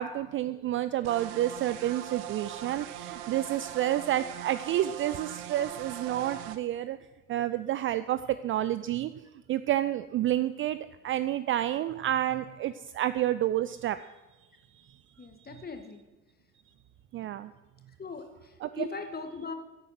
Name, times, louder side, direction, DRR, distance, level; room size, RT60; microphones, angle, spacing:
voice 1, 0.0-7.0 7.3-9.1 9.5-14.0 15.4-15.6 17.1-17.5 18.6-18.9, right 13 dB, 30° right, 13 dB, 0.5 m, -29 dB
sound 1, 1.0-6.6, right 10 dB, 55° right, 1.1 m, -41 dB
voice 2, 15.2-16.0 18.0-19.5, left 4 dB, 20° left, 6 dB, 2.0 m, -39 dB
15.0 x 8.5 x 6.2 m, 1.1 s
figure-of-eight pair, 65°, 41 cm